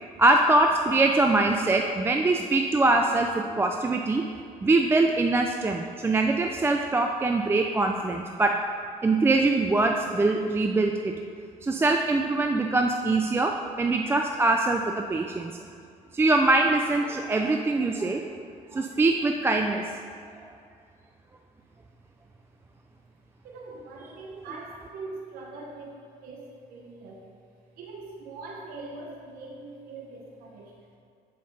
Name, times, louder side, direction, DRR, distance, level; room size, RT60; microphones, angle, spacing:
voice 1, 0.2-4.3 4.6-8.6 9.0-11.1 11.6-15.5 16.1-18.2 18.7-19.9, right 2 dB, 15° right, 3 dB, 0.4 m, -23 dB
voice 2, 23.4-27.3 27.7-30.7, right 3 dB, 70° right, -1 dB, 1.1 m, -42 dB
10.5 x 5.4 x 4.1 m, 2.3 s
cardioid pair, 105°, 16 cm